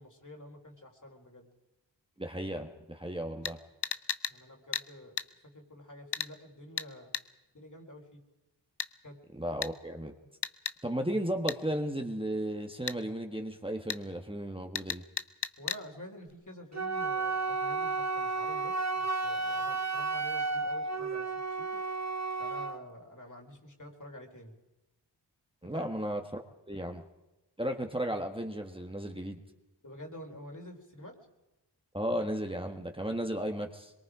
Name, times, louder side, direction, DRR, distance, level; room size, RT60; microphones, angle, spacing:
voice 1, 0.0-1.5 4.3-5.2 5.5-7.1 7.5-8.2 9.0-9.2 15.6-21.8 22.4-24.5 25.6-25.9 26.7-26.8 29.8-31.1, left 1 dB, 45° left, 1 dB, 4.2 m, -48 dB
voice 2, 2.2-3.6 9.3-10.1 10.8-15.0 25.6-27.0 27.6-29.4 31.9-33.9, equal, 10° right, 3 dB, 1.6 m, -34 dB
sound 1, 3.4-3.6 3.8-4.4 4.7-4.9 5.2-5.3 6.1-6.3 6.8-6.9 7.1-7.3 8.8-8.9 9.6-9.7 10.4-10.8 11.5-11.6 12.9-13.0 13.9-14.0 14.7-15.8 16.3-16.4, left 7 dB, 70° left, 0.9 m, -34 dB
Wind instrument woodwind instrument, 16.7-22.8, right 3 dB, 40° right, 1.3 m, -32 dB
23.0 x 22.5 x 5.0 m, 1.0 s
wide cardioid pair, 40°, 42 cm